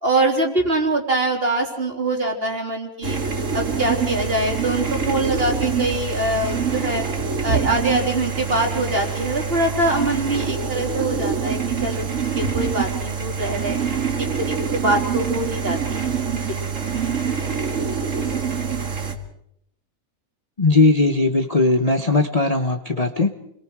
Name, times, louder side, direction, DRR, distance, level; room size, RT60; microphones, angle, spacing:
voice 1, 0.0-3.2 3.5-7.0 7.4-13.8 14.2-16.6, right 2 dB, 40° right, 1 dB, 3.7 m, -24 dB
sound 1, 3.0-19.1, right 6 dB, 60° right, 2.4 m, -25 dB
voice 2, 20.6-23.3, left 3 dB, 30° left, 6 dB, 1.1 m, -18 dB
29.5 x 22.0 x 4.8 m, 0.74 s
omnidirectional pair, 1.5 m